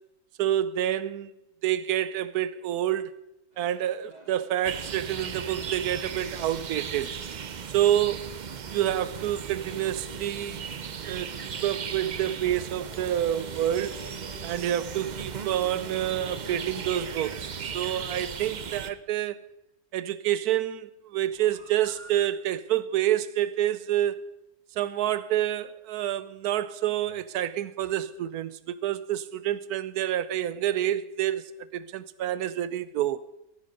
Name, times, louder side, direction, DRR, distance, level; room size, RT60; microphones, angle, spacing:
voice 1, 0.4-1.3 1.6-3.1 3.6-7.1 7.7-8.3 8.7-10.7 11.0-14.0 14.4-17.5 17.7-19.4 19.9-24.2 24.8-33.2, right 12 dB, 85° right, 1.2 m, -28 dB
sound 1, 3.5-19.1 21.2-22.3, right 2 dB, 25° right, 2.0 m, -49 dB
sound 2, 4.6-18.9, right 7 dB, 60° right, 0.4 m, -37 dB
15.5 x 9.5 x 5.1 m
omnidirectional pair, 1.6 m